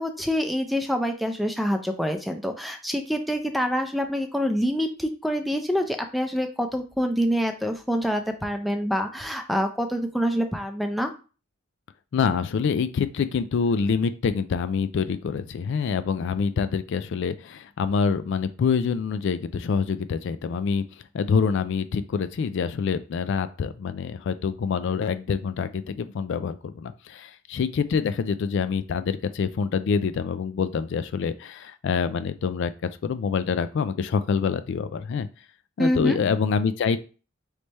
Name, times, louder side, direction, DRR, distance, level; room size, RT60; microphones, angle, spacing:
voice 1, 0.0-11.1 35.8-36.2, equal, ahead, 6 dB, 0.4 m, -26 dB
voice 2, 12.1-20.8 21.1-32.7 33.0-35.3 35.8-37.0, left 6 dB, 60° left, 12 dB, 0.3 m, -26 dB
3.3 x 3.3 x 4.1 m, 0.35 s
head